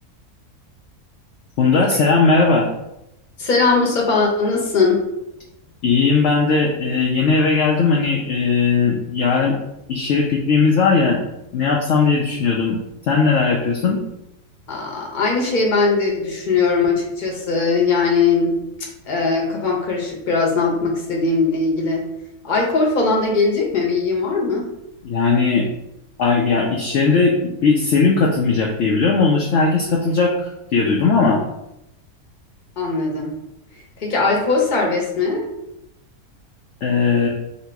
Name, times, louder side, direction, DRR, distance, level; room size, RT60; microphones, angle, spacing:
voice 1, 1.6-2.7 5.8-9.6 9.9-11.3 11.5-12.8 13.1-14.0 25.0-25.7 26.2-31.4 36.8-37.3, left 4 dB, 65° left, -1 dB, 0.8 m, -18 dB
voice 2, 3.4-5.0 14.7-18.6 19.1-22.0 22.4-24.7 32.8-33.4 34.0-35.4, left 4 dB, 40° left, -1 dB, 0.9 m, -20 dB
3.0 x 2.8 x 4.4 m, 0.86 s
omnidirectional pair, 1.6 m